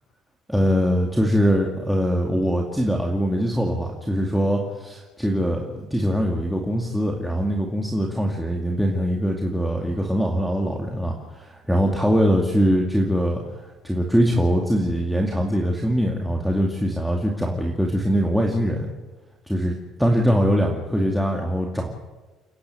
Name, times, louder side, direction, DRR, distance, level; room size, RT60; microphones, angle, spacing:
voice 1, 0.5-18.9 19.5-21.9, equal, ahead, -1 dB, 2.3 m, -22 dB
29.5 x 10.5 x 9.0 m, 1.2 s
cardioid pair, 120°, 0 cm